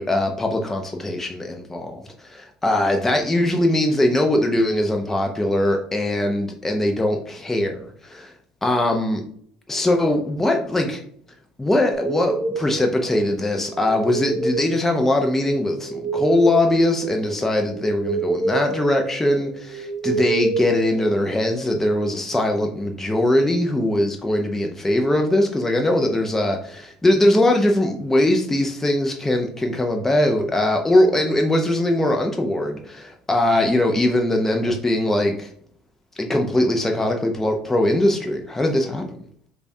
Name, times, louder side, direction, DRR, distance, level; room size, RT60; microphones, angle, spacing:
voice 1, 0.0-8.3 8.6-9.2 9.7-11.0 11.6-35.5 36.2-39.0, left 1 dB, 10° left, 3 dB, 0.5 m, -21 dB
sound 1, 11.9-21.6, right 3 dB, 65° right, 0.6 m, -29 dB
4.9 x 2.3 x 2.6 m, 0.62 s
supercardioid pair, 85°, 3 cm